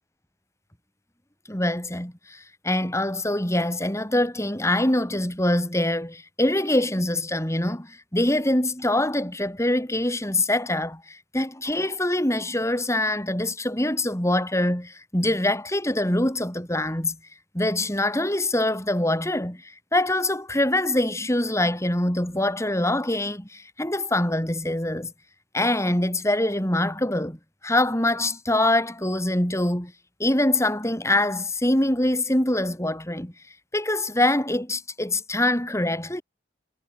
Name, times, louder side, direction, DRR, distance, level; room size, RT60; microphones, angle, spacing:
voice 1, 1.5-17.2 17.5-25.1 25.5-27.4 27.6-29.9 30.2-33.3 33.7-36.2, left 1 dB, 15° left, 5.4 m, -24 dB
head